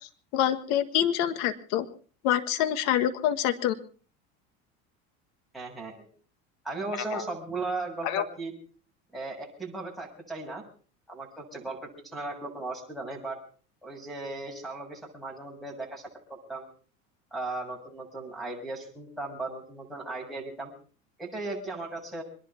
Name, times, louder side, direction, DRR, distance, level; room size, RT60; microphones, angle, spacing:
voice 1, 0.3-1.9 2.2-3.7 7.1-7.2 8.0-8.2, left 11 dB, 70° left, 11 dB, 1.7 m, -26 dB
voice 2, 5.5-6.1 6.6-8.5 9.1-10.6 11.1-13.4 13.8-16.7 17.3-20.7 21.2-22.2, right 3 dB, ahead, 5 dB, 7.1 m, -37 dB
25.5 x 11.0 x 4.4 m, 0.40 s
supercardioid pair, 100°, 33 cm